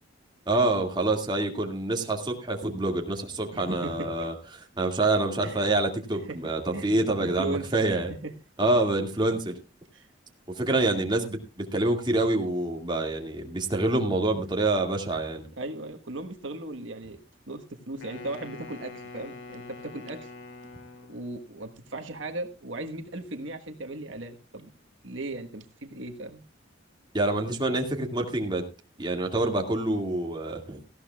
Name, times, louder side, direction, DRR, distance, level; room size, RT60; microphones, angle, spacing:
voice 1, 0.5-4.3 4.8-8.1 8.6-9.5 10.6-15.4 27.1-28.6 29.0-30.8, right 2 dB, 25° right, 2 dB, 2.2 m, -26 dB
voice 2, 3.5-4.3 5.4-5.7 6.3-7.7 8.1-8.3 9.9-10.1 15.6-17.2 17.5-20.3 21.1-24.7 25.0-26.4, right 2 dB, 75° right, 5 dB, 1.4 m, -37 dB
Wind instrument woodwind instrument, 18.0-21.5, left 3 dB, 75° left, 2.5 m, -44 dB
18.0 x 14.5 x 2.4 m, 0.30 s
head